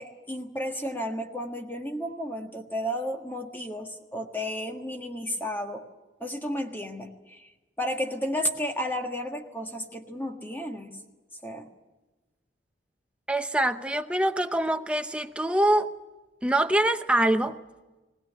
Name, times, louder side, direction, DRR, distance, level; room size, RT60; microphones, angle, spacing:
voice 1, 0.0-5.8 6.2-7.5 7.8-10.9 11.4-11.7, equal, 10° left, 1.6 m, -32 dB
voice 2, 13.3-15.9 16.4-17.6, right 1 dB, 5° right, 0.7 m, -24 dB
20.5 x 18.0 x 9.2 m
head